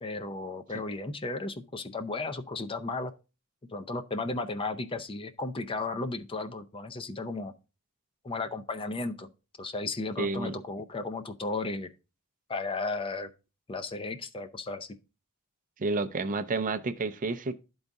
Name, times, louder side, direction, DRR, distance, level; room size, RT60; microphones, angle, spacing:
voice 1, 0.0-3.1 3.7-7.5 8.2-9.3 9.6-11.9 12.5-13.3 13.7-15.0, left 3 dB, 25° left, 0.5 m, -34 dB
voice 2, 10.2-10.6 15.8-17.6, right 3 dB, 35° right, 0.5 m, -30 dB
11.5 x 3.9 x 3.5 m
head